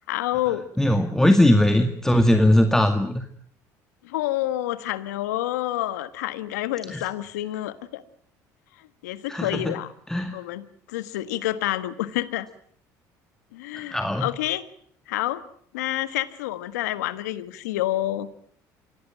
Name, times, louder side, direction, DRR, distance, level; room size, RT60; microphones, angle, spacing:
voice 1, 0.1-0.6 4.0-8.0 8.8-9.9 10.3-12.5 13.5-14.7 15.1-15.4 15.7-18.3, left 15 dB, 85° left, 14 dB, 1.5 m, -28 dB
voice 2, 0.8-3.3 6.9-7.0 9.3-9.7 10.1-10.4 13.7-14.2, left 1 dB, 5° left, 7 dB, 2.1 m, -20 dB
25.0 x 18.0 x 9.1 m, 0.63 s
hypercardioid pair, 75°, 9 cm